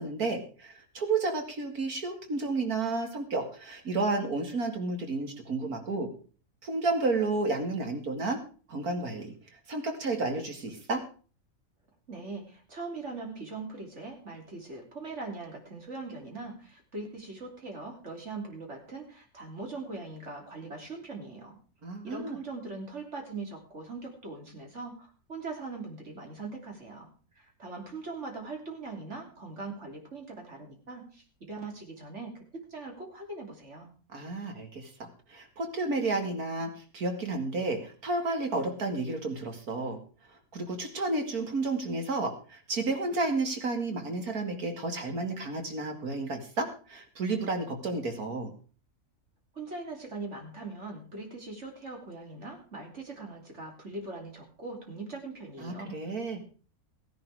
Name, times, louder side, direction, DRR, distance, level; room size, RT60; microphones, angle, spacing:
voice 1, 0.0-6.1 6.6-8.4 8.7-9.3 9.7-11.0 21.8-22.4 34.1-40.0 40.3-48.5 55.6-56.4, right 3 dB, 85° right, 4 dB, 2.8 m, -31 dB
voice 2, 12.1-21.6 22.0-27.1 27.4-32.4 32.7-33.9 49.5-56.0, right 3 dB, 50° right, 2 dB, 3.6 m, -41 dB
15.5 x 10.5 x 4.9 m, 0.39 s
omnidirectional pair, 1.5 m